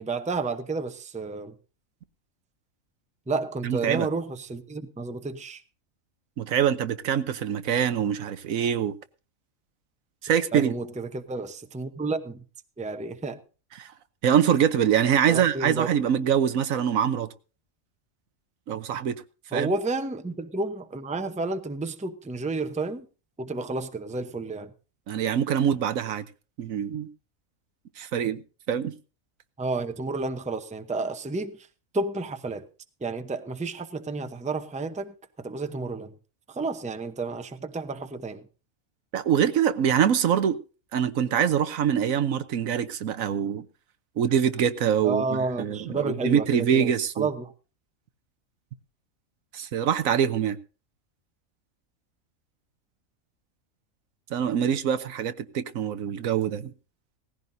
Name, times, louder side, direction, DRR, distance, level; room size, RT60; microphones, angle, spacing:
voice 1, 0.0-1.5 3.3-5.6 10.5-12.4 12.8-13.4 15.3-15.9 19.5-23.1 23.4-24.7 29.6-31.6 31.9-32.6 33.0-36.1 36.5-38.4 45.0-47.5, right 3 dB, 10° right, 0.6 m, -31 dB
voice 2, 3.6-4.1 6.4-8.9 10.2-10.7 13.8-13.9 14.2-17.3 18.7-19.2 19.5-19.7 25.1-26.2 26.6-27.1 28.0-28.4 28.7-28.9 39.1-40.6 40.9-43.6 44.2-47.3 49.5-50.6 54.3-56.7, right 8 dB, 90° right, 1.3 m, -24 dB
18.0 x 15.0 x 2.6 m
omnidirectional pair, 1.4 m